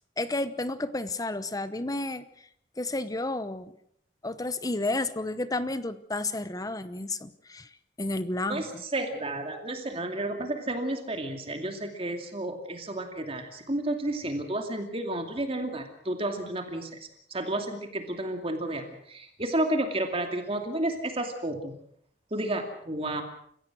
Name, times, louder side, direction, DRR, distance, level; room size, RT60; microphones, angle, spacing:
voice 1, 0.2-2.2 2.8-3.7 4.2-7.7 8.0-8.6, left 2 dB, 20° left, 13 dB, 0.9 m, -31 dB
voice 2, 8.5-16.9 17.3-21.8 22.3-23.2, right 1 dB, 35° right, 5 dB, 2.6 m, -31 dB
29.5 x 16.5 x 6.3 m, 0.67 s
head